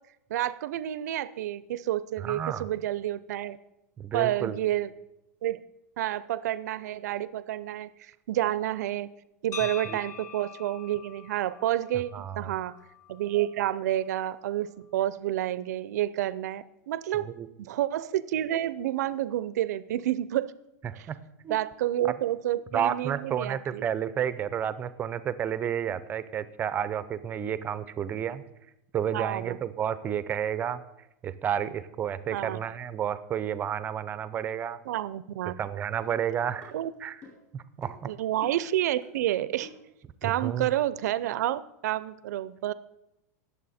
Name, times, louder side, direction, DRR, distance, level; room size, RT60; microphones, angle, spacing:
voice 1, 0.3-3.6 4.1-4.9 5.4-5.6 6.0-9.1 9.4-12.7 13.1-17.3 17.6-20.5 21.0-21.1 21.5-23.8 29.1-29.6 32.3-32.6 34.9-35.5 36.7-36.9 38.0-39.7 40.2-42.7, right 13 dB, 75° right, 16 dB, 0.5 m, -29 dB
voice 2, 2.2-2.7 4.0-4.6 9.9-10.0 12.1-12.5 17.1-17.5 20.8-21.2 21.4-21.6 22.0-22.1 22.7-28.4 28.9-30.8 31.2-34.8 35.6-36.7 37.0-37.2 37.5-38.1 40.2-40.7, right 9 dB, 20° right, 14 dB, 0.5 m, -31 dB
sound 1, 9.5-13.6, left 7 dB, 85° left, 1.3 m, -44 dB
sound 2, 36.0-36.1 36.6-36.8 37.2-37.5 37.8-38.0 38.4-38.7 39.0-39.2 39.6-39.9 40.2-40.4, left 4 dB, 30° left, 4.5 m, -49 dB
19.5 x 7.1 x 4.2 m, 0.88 s
supercardioid pair, 150°, 9 cm